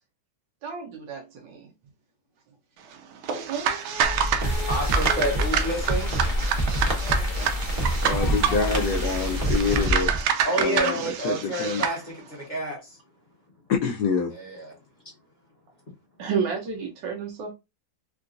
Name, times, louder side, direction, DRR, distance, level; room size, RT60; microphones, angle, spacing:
voice 1, 0.6-1.7 3.5-5.4 7.7-7.8 16.2-17.5, right 5 dB, 70° right, 1.4 m, -32 dB
sound 1, 3.2-12.0, right 8 dB, 90° right, 1.4 m, -28 dB
sound 2, 4.0-10.2, equal, 45° right, 0.6 m, -26 dB
sound 3, 4.4-9.9, left 3 dB, 50° left, 1.3 m, -38 dB
voice 2, 4.7-6.1 10.4-13.0 14.3-14.7, right 1 dB, 35° left, 0.8 m, -29 dB
voice 3, 8.0-10.1 10.6-11.9 13.7-14.3, left 5 dB, 75° left, 0.9 m, -26 dB
3.8 x 2.3 x 2.5 m
omnidirectional pair, 2.2 m